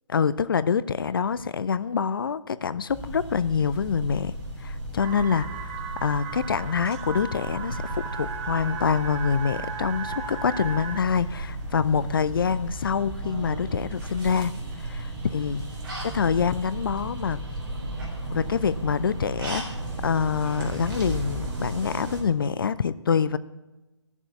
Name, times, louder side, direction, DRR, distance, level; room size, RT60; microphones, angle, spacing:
voice 1, 0.1-4.3 4.6-5.7 6.0-15.6 16.0-17.4 18.3-19.7 20.0-23.4, left 6 dB, 45° left, 16 dB, 0.4 m, -26 dB
sound 1, 2.9-22.2, right 1 dB, 45° right, 4.0 m, -35 dB
sound 2, 5.0-11.0, right 6 dB, 20° right, 0.9 m, -36 dB
sound 3, 5.3-15.8, left 1 dB, 10° left, 3.4 m, -50 dB
14.0 x 7.2 x 8.2 m, 1.1 s
figure-of-eight pair, 140°, 16 cm